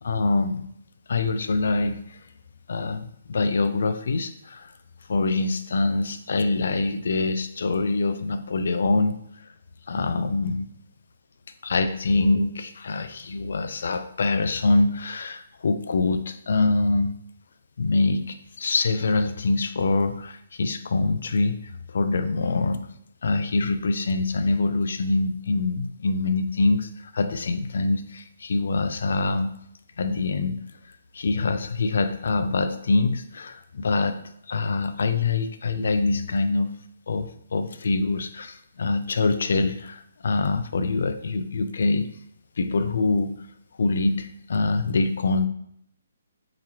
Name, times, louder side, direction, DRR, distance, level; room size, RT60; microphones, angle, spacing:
voice 1, 0.0-0.7 1.1-2.0 2.7-4.7 5.1-9.2 9.9-10.7 11.6-17.1 17.8-22.9 23.2-29.5 30.0-30.6 31.1-34.2 34.5-36.8 37.1-42.1 42.6-43.3 43.8-45.5, left 3 dB, 65° left, 10 dB, 0.3 m, -24 dB
3.7 x 2.8 x 3.0 m, 0.70 s
hypercardioid pair, 170°, 0 cm